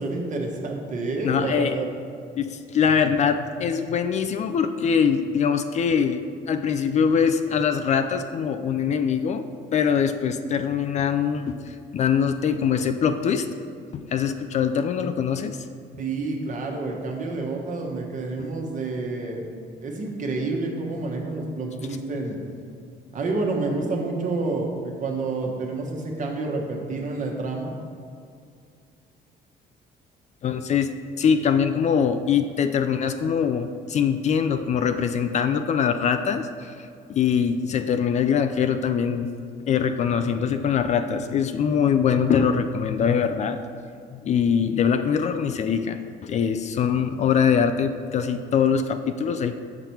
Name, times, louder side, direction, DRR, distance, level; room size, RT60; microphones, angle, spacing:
voice 1, 0.0-1.9 16.0-19.4 19.8-22.4 23.1-27.7, right 3 dB, 50° right, 1 dB, 1.2 m, -28 dB
voice 2, 1.2-1.8 2.4-9.5 9.7-13.5 13.9-15.6 30.4-30.9 31.2-36.7 37.1-39.3 39.7-43.6 44.1-49.6, left 7 dB, 45° left, 9 dB, 0.4 m, -23 dB
6.9 x 5.9 x 4.4 m, 2.2 s
cardioid pair, 110°, 17 cm